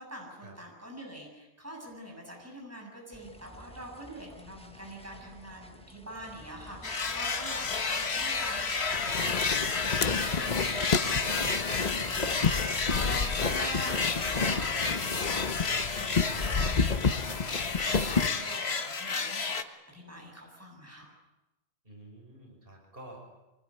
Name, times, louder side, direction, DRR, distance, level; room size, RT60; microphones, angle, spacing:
voice 1, 0.0-21.1, equal, 15° right, -1 dB, 7.8 m, -45 dB
sound 1, 3.1-14.5, left 1 dB, 5° left, 1.4 m, -50 dB
sound 2, 6.8-19.6, left 4 dB, 70° left, 1.7 m, -31 dB
sound 3, 8.9-18.3, left 5 dB, 40° left, 1.1 m, -30 dB
voice 2, 21.8-23.2, right 1 dB, 55° right, 1 dB, 6.1 m, -50 dB
25.0 x 20.0 x 9.9 m, 1.0 s
omnidirectional pair, 1.1 m